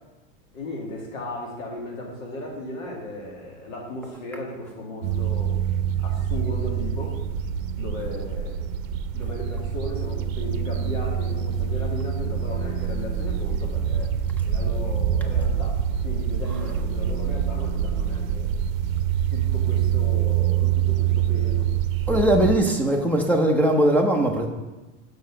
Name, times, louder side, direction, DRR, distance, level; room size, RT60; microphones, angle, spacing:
voice 1, 0.5-5.6 6.0-7.2 7.7-8.6 9.1-14.1 14.4-18.5 19.3-21.7, left 1 dB, 80° left, -1 dB, 2.3 m, -36 dB
sound 1, 5.0-22.6, right 9 dB, 85° right, 0.6 m, -25 dB
voice 2, 22.1-24.5, right 1 dB, 5° left, 2 dB, 0.6 m, -20 dB
6.3 x 4.7 x 5.7 m, 1.1 s
supercardioid pair, 125°, 39 cm